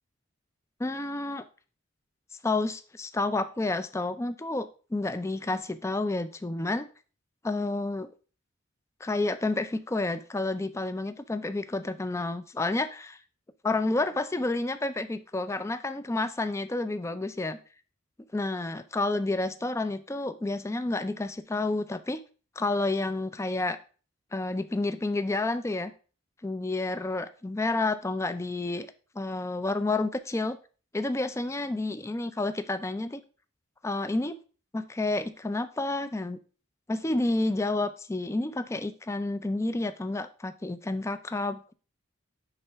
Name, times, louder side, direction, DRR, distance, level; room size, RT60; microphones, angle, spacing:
voice 1, 0.8-1.4 2.4-6.9 7.4-8.1 9.0-13.2 13.6-17.6 18.3-22.2 22.6-23.8 24.3-25.9 26.4-28.9 29.2-30.6 30.9-33.2 33.8-34.4 34.7-36.4 36.9-41.7, left 2 dB, 15° left, 12 dB, 0.3 m, -30 dB
9.7 x 3.9 x 3.4 m, 0.37 s
head